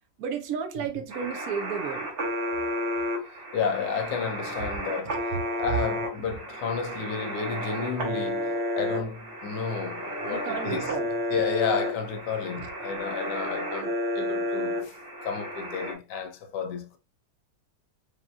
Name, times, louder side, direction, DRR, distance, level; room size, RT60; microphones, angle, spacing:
voice 1, 0.2-2.1 5.1-5.2 10.3-11.1 12.6-12.7, right 7 dB, 65° right, 1.0 m, -33 dB
sound 1, 1.1-15.9, equal, 45° right, 1.3 m, -32 dB
voice 2, 3.5-10.9 11.3-14.9 15.2-17.0, left 6 dB, 75° left, 1.2 m, -32 dB
5.0 x 2.8 x 2.3 m
omnidirectional pair, 1.9 m